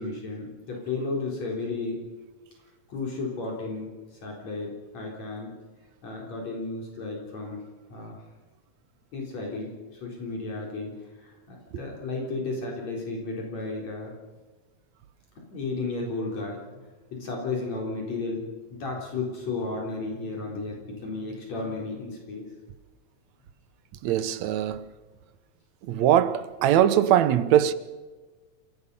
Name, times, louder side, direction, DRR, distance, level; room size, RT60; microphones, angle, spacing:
voice 1, 0.0-2.0 2.9-3.9 4.2-5.5 6.0-7.6 7.9-8.2 9.1-9.7 10.0-14.1 15.4-18.5 18.7-22.5, left 3 dB, 65° left, 5.1 m, -33 dB
voice 2, 24.0-24.9 25.8-27.7, right 11 dB, 75° right, 2.1 m, -21 dB
28.0 x 18.0 x 5.5 m
omnidirectional pair, 3.4 m